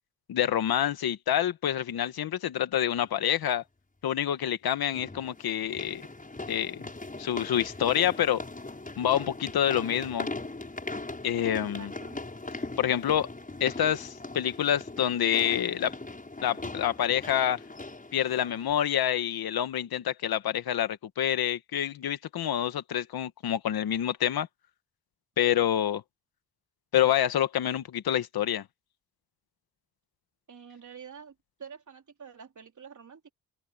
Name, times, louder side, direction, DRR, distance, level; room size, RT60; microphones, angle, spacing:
voice 1, 0.3-3.6 4.0-6.0 6.5-6.8 7.2-8.4 9.0-10.3 11.2-11.9 12.8-13.3 13.6-15.9 16.4-17.6 18.1-24.5 25.4-26.0 26.9-28.6, left 10 dB, 85° left, 1.5 m, -27 dB
sound 1, 3.0-3.1 4.9-18.8, left 2 dB, 25° left, 7.4 m, -40 dB
voice 2, 11.5-12.2 30.5-31.3 31.6-33.3, right 6 dB, 55° right, 4.0 m, -47 dB
open air
cardioid pair, 70°, 36 cm